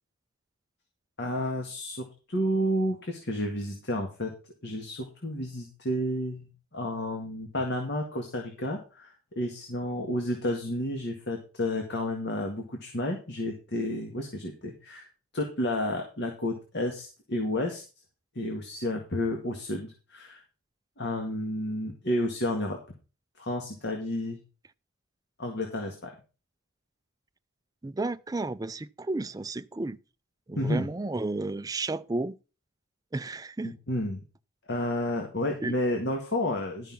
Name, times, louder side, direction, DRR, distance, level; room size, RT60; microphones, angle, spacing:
voice 1, 1.2-4.3 4.6-15.1 15.3-17.8 18.4-20.4 21.0-22.8 23.4-24.4 25.4-26.2 30.6-30.9 33.6-34.2 34.7-36.9, left 1 dB, 55° left, 1.9 m, -31 dB
voice 2, 27.8-30.0 30.5-32.3 33.1-33.7 35.6-35.7, right 2 dB, 15° right, 0.4 m, -32 dB
12.0 x 5.8 x 5.9 m
head